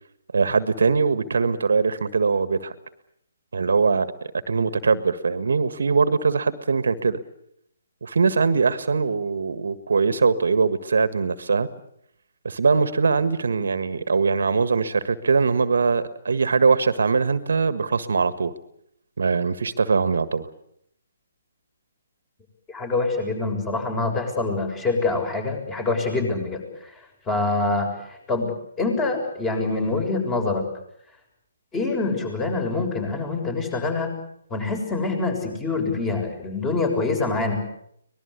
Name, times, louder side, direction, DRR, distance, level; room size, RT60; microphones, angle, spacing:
voice 1, 0.3-2.7 3.5-4.1 4.5-7.2 8.0-11.7 12.4-18.5 19.2-20.5, right 4 dB, 65° right, 13 dB, 1.6 m, -21 dB
voice 2, 22.7-26.6 27.3-28.5 28.8-30.6 31.7-34.1 34.5-37.6, left 3 dB, 15° left, 5 dB, 6.8 m, -25 dB
24.5 x 20.0 x 8.3 m, 0.72 s
figure-of-eight pair, 140°, 0 cm